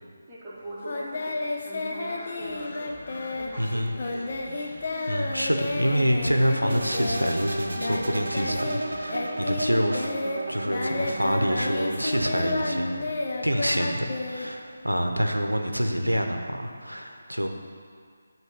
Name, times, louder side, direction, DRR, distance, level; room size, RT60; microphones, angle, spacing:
voice 1, 0.3-4.4, right 1 dB, 10° right, -10 dB, 1.5 m, -41 dB
Singing, 0.8-8.8 9.1-14.9, left 2 dB, 40° left, 0.6 m, -31 dB
sound 1, 2.4-9.3, left 1 dB, 65° left, 1.0 m, -47 dB
voice 2, 3.6-3.9 5.1-10.2 10.5-13.1 13.4-17.5, equal, 85° right, 4 dB, 0.7 m, -26 dB
sound 2, 6.7-12.7, right 1 dB, 50° right, 0.6 m, -33 dB
7.5 x 3.1 x 5.9 m, 2.1 s
figure-of-eight pair, 155°, 0 cm